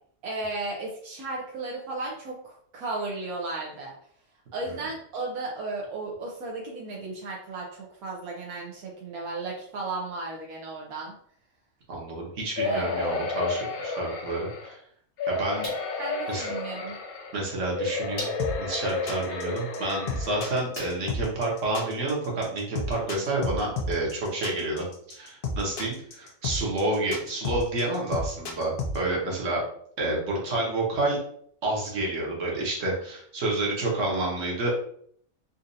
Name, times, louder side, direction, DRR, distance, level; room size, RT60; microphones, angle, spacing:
voice 1, 0.2-2.4 2.7-3.9 4.5-11.1 12.6-13.1 16.0-17.0, right 3 dB, 80° right, -2 dB, 1.2 m, -34 dB
voice 2, 11.9-14.8 15.3-15.7 16.3-16.5 17.3-18.3 18.6-29.6 30.0-31.2 31.6-34.7, right 2 dB, 60° right, -3 dB, 1.4 m, -29 dB
sound 1, 12.6-14.7 15.2-17.4 17.7-20.6 21.2-21.3 21.6-21.7, left 3 dB, 90° left, 1.2 m, -31 dB
sound 2, 15.6-16.2 17.3-17.4 18.2-18.7 20.7-21.3, equal, 20° left, 0.9 m, -40 dB
sound 3, 18.4-29.0, left 3 dB, 55° left, 0.6 m, -31 dB
4.1 x 2.5 x 2.6 m, 0.62 s
omnidirectional pair, 1.5 m